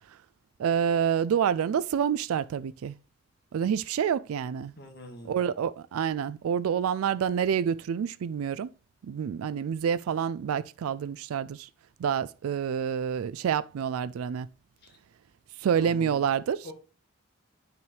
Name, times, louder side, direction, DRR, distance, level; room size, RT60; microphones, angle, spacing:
voice 1, 0.6-3.0 3.5-4.7 5.2-8.7 9.0-11.7 12.0-14.5 15.6-16.7, right 8 dB, 90° right, 0.3 m, -28 dB
voice 2, 4.8-5.4 15.7-16.2 16.6-16.7, equal, 50° left, 1.9 m, -44 dB
9.0 x 5.7 x 3.1 m
head